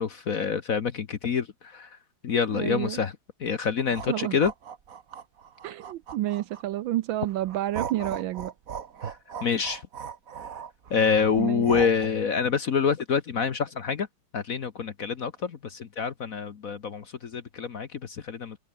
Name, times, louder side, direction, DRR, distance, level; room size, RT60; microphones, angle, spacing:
voice 1, 0.0-1.5 1.7-1.9 2.2-3.1 3.4-4.5 9.0-9.1 9.4-9.8 10.9-14.1 14.3-18.6, left 6 dB, 50° left, 1.3 m, -26 dB
voice 2, 2.5-3.0 4.1-4.4 5.6-8.5 11.4-11.7, right 14 dB, 75° right, 1.3 m, -30 dB
sound 1, 3.8-6.8 7.2-12.1, right 7 dB, 45° right, 1.5 m, -38 dB
omnidirectional pair, 2.4 m